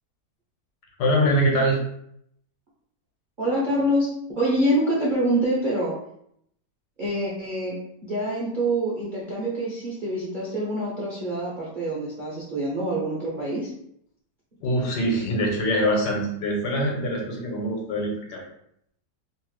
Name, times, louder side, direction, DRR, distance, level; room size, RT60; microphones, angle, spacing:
voice 1, 1.0-1.8 14.6-18.4, equal, 80° left, -1 dB, 1.3 m, -23 dB
voice 2, 3.4-6.0 7.0-7.8 8.0-13.7, right 1 dB, 65° right, -7 dB, 0.5 m, -26 dB
3.0 x 2.0 x 3.1 m, 0.72 s
omnidirectional pair, 1.8 m